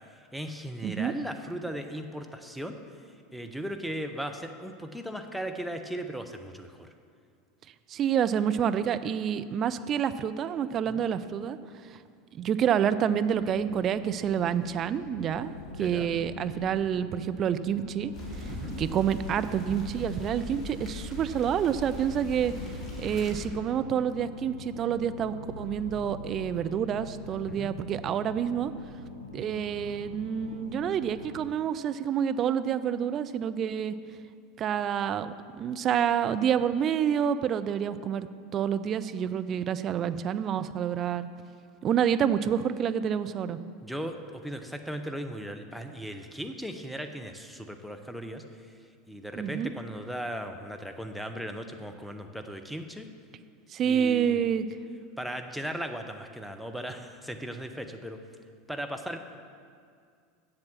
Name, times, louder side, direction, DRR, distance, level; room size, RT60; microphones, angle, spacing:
voice 1, 0.3-2.8 3.3-6.9 10.9-11.0 15.8-16.1 18.5-18.7 27.5-27.7 43.8-48.7 49.1-53.1 53.8-54.4 55.2-58.2 58.7-59.2, equal, ahead, 4 dB, 0.8 m, -37 dB
voice 2, 0.8-1.1 7.9-11.6 12.3-18.1 18.8-22.5 23.0-28.7 29.3-33.9 34.6-38.3 38.5-41.3 41.8-43.6 49.3-49.7 53.7-54.7, right 8 dB, 35° right, 11 dB, 0.4 m, -28 dB
sound 1, 13.3-31.5, left 3 dB, 80° left, 0.6 m, -45 dB
sound 2, 18.1-23.5, left 1 dB, 20° left, 2.3 m, -39 dB
7.6 x 7.3 x 7.4 m, 2.2 s
figure-of-eight pair, 80°, 0 cm